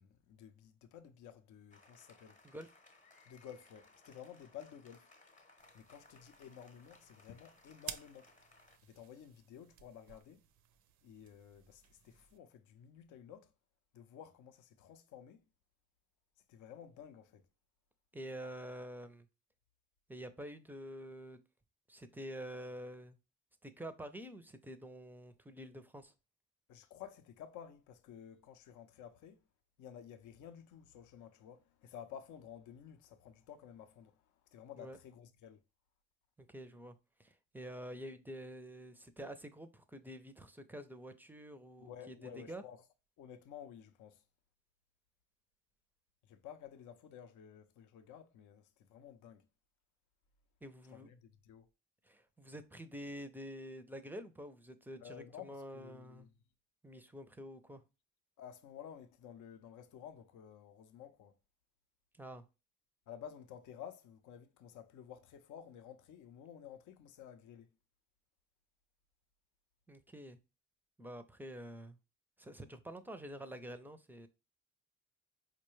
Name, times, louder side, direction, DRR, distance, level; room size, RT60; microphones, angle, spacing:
voice 1, 0.0-2.4 3.3-5.1 5.7-8.3 8.8-10.4 11.0-13.5 13.9-15.4 16.5-17.4 26.7-29.4 29.8-35.6 41.8-42.8 43.2-44.2 46.2-49.5 50.9-51.7 55.0-56.3 58.4-61.4 63.1-67.7, left 9 dB, 75° left, 0.5 m, -53 dB
Applause, 1.7-8.8, left 3 dB, 25° left, 0.7 m, -64 dB
sound 1, 5.6-12.4, right 10 dB, 70° right, 0.5 m, -54 dB
voice 2, 18.1-19.3 20.1-21.4 21.9-23.2 23.6-26.1 34.8-35.0 36.4-42.6 50.6-51.1 52.0-56.3 56.8-57.8 62.1-62.4 69.9-70.4 71.0-72.0 72.4-74.3, equal, 5° right, 0.4 m, -48 dB
4.6 x 2.2 x 3.0 m
cardioid pair, 90°, 30 cm